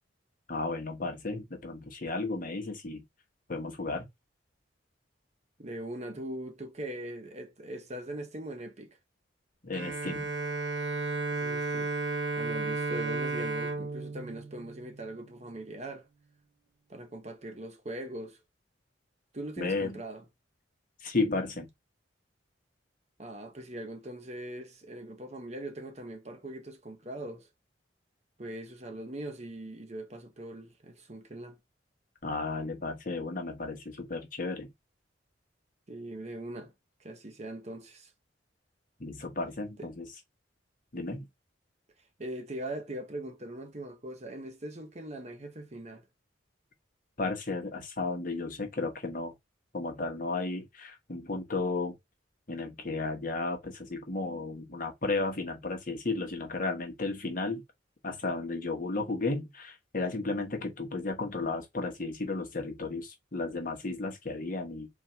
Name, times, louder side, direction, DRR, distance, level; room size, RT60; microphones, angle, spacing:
voice 1, 0.5-3.0 3.5-4.1 9.6-10.3 19.6-20.0 21.0-21.7 32.2-34.7 39.0-40.0 40.9-41.3 47.2-49.3 49.7-51.9 52.5-57.6 58.0-64.9, left 3 dB, 45° left, 1.3 m, -33 dB
voice 2, 5.6-9.0 11.3-11.9 12.4-16.1 16.9-18.4 19.3-20.2 23.2-27.5 28.4-31.6 35.9-36.7 37.0-38.1 39.8-39.9 42.2-46.1, right 1 dB, 35° right, 0.9 m, -41 dB
Bowed string instrument, 9.7-15.4, right 3 dB, 75° right, 1.0 m, -33 dB
3.9 x 2.9 x 4.4 m
head